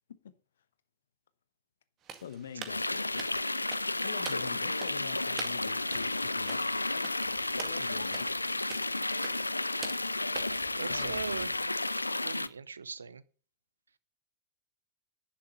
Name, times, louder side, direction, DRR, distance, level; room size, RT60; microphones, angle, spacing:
sound 1, 2.0-11.7, right 7 dB, 30° right, 2.0 m, -48 dB
voice 1, 2.2-3.2 4.0-6.8 7.3-8.3 10.8-11.5, left 8 dB, 65° left, 1.1 m, -45 dB
sound 2, 2.7-12.5, left 2 dB, 85° left, 0.5 m, -32 dB
voice 2, 10.8-11.5 12.2-13.2, right 5 dB, 75° right, 0.7 m, -39 dB
11.0 x 7.5 x 7.1 m
figure-of-eight pair, 90°, 0 cm